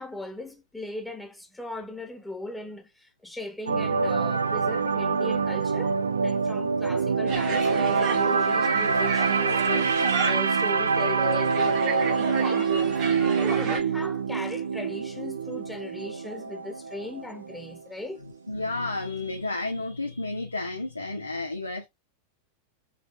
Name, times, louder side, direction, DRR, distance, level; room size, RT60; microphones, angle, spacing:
voice 1, 0.0-13.0 13.3-18.2, left 2 dB, 5° left, 1.4 m, -38 dB
sound 1, 3.7-17.8 18.1-18.3, right 5 dB, 75° right, 0.4 m, -25 dB
sound 2, 7.3-13.8, right 5 dB, 40° right, 1.8 m, -34 dB
voice 2, 18.5-21.9, left 2 dB, 85° left, 0.8 m, -31 dB
5.0 x 3.9 x 2.3 m
figure-of-eight pair, 90°, 0 cm